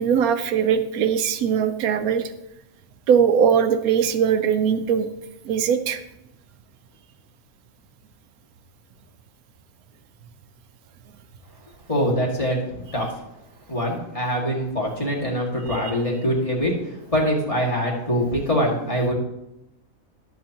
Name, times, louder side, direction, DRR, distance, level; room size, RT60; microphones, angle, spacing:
voice 1, 0.0-2.3 3.1-5.1 5.4-6.0, right 7 dB, 85° right, 9 dB, 1.1 m, -20 dB
voice 2, 11.9-13.1 13.7-19.1, equal, 25° left, -3 dB, 2.0 m, -24 dB
11.5 x 7.6 x 2.9 m, 0.86 s
omnidirectional pair, 1.5 m